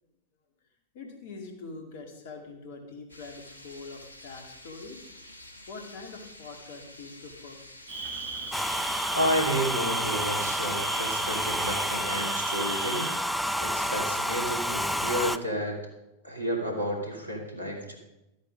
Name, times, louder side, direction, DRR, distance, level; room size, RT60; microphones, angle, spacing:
voice 1, 0.9-5.1 5.7-7.6 7.9-8.1, left 4 dB, 55° left, 3 dB, 2.3 m, -44 dB
sound 1, 3.1-9.1, left 1 dB, 80° left, 1.3 m, -49 dB
Cricket, 7.9-13.1, right 4 dB, 35° right, 4.8 m, -35 dB
Domestic sounds home sounds, 8.5-15.4, equal, 5° left, 0.5 m, -30 dB
voice 2, 9.1-13.1 13.6-15.8 16.2-17.9, equal, 80° right, 1 dB, 2.7 m, -31 dB
13.0 x 8.1 x 5.1 m, 0.91 s
figure-of-eight pair, 90°, 0 cm